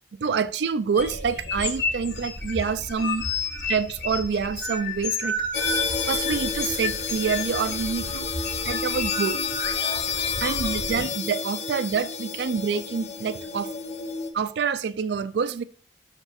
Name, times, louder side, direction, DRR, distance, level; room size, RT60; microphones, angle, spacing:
voice 1, 0.2-3.3 3.7-5.4 6.1-8.3 8.7-9.4 10.4-13.7 14.3-15.6, right 6 dB, 70° right, 0.4 m, -27 dB
sound 1, 1.0-11.1, left 3 dB, 80° left, 1.6 m, -31 dB
sound 2, 5.5-14.3, left 6 dB, 40° left, 0.7 m, -30 dB
12.0 x 5.3 x 2.4 m
head